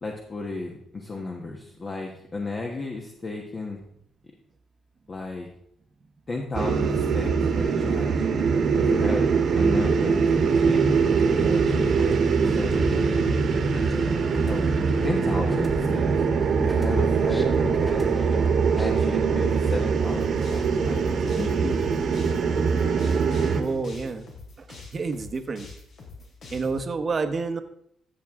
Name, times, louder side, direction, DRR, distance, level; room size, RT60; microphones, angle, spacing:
voice 1, 0.0-3.8 5.1-5.5 6.3-8.3 8.8-9.3 9.5-12.2 12.4-13.1 14.4-14.7 15.0-16.2 16.6-18.1 18.7-22.4, left 3 dB, 35° left, 0 dB, 1.3 m, -34 dB
sound 1, 6.5-23.6, right 5 dB, 60° right, 1.4 m, -22 dB
sound 2, 12.0-16.4 16.7-19.0, equal, 5° left, 1.4 m, -37 dB
sound 3, 20.0-26.8, left 4 dB, 65° left, 3.0 m, -44 dB
voice 2, 23.6-24.3 24.6-25.7 26.5-27.6, right 4 dB, 40° right, 9 dB, 1.0 m, -29 dB
15.0 x 6.3 x 3.7 m, 0.70 s
cardioid pair, 90°, 0 cm